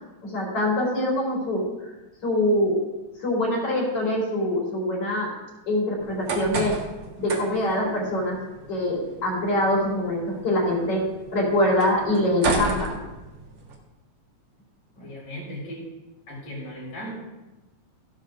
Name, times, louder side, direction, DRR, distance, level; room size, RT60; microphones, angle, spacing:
voice 1, 0.2-1.9 2.2-2.8 3.2-5.3 5.7-6.7 7.2-8.4 8.7-11.0 11.3-13.0, left 1 dB, 50° left, -4 dB, 4.8 m, -24 dB
sound 1, 6.0-13.7, right 3 dB, 50° right, 2.2 m, -33 dB
voice 2, 15.0-15.8 16.3-17.1, equal, 70° left, -5 dB, 6.1 m, -37 dB
16.0 x 11.5 x 2.6 m, 1.1 s
omnidirectional pair, 3.5 m